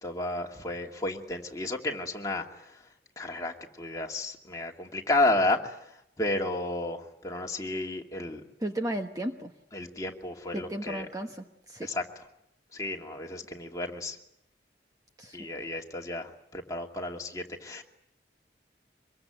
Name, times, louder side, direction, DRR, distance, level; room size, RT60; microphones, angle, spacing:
voice 1, 0.0-2.5 3.2-5.7 6.2-8.4 9.7-11.1 11.8-12.0 12.7-14.2 15.3-17.8, left 2 dB, 20° left, 1 dB, 2.6 m, -32 dB
voice 2, 8.6-9.5 10.5-11.9 15.2-15.4, right 1 dB, 20° right, 4 dB, 1.2 m, -34 dB
25.0 x 22.0 x 9.1 m, 0.77 s
head